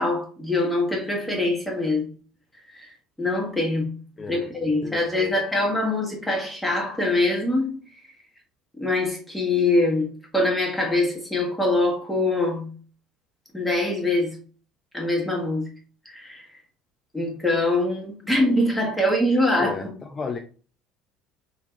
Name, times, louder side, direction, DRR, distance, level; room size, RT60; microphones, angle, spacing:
voice 1, 0.0-2.1 2.7-2.8 3.2-3.9 4.3-7.8 8.8-12.7 13.5-14.4 14.9-15.6 16.0-16.5 17.1-19.9, left 2 dB, 5° left, 1.5 m, -23 dB
voice 2, 4.2-4.5 4.8-5.4 19.5-20.4, left 5 dB, 25° left, 0.4 m, -34 dB
4.1 x 2.8 x 2.5 m
figure-of-eight pair, 60°, 0 cm